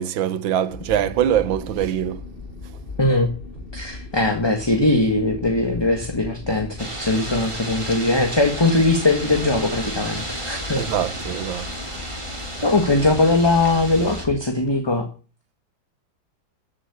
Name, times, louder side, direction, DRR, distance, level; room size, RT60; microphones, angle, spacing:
voice 1, 0.0-2.3 10.8-11.8, right 10 dB, 80° right, 1.7 m, -23 dB
sound 1, 0.7-14.4, left 2 dB, 30° left, 2.1 m, -37 dB
voice 2, 3.0-3.3 3.7-10.9 12.6-15.1, left 2 dB, 15° left, 1.5 m, -20 dB
sound 2, 6.8-14.2, right 1 dB, 15° right, 2.9 m, -33 dB
14.0 x 7.8 x 8.2 m
omnidirectional pair, 2.1 m